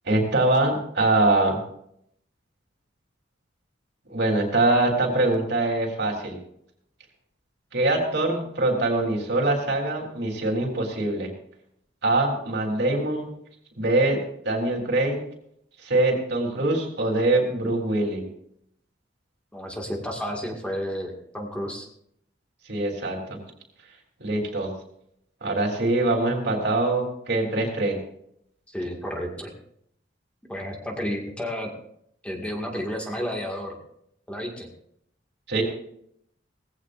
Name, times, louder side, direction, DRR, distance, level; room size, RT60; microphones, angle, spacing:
voice 1, 0.1-1.6 4.1-6.4 7.7-11.3 12.0-13.3 13.8-14.2 14.4-15.2 15.8-18.2 22.7-23.4 24.2-24.7 25.4-28.0 35.5-35.6, right 2 dB, 65° right, 1 dB, 3.5 m, -23 dB
voice 2, 19.5-21.9 28.7-29.5 30.5-31.7 32.2-33.8 34.3-34.7, equal, 5° left, 0 dB, 2.0 m, -31 dB
19.0 x 16.0 x 2.6 m, 0.71 s
head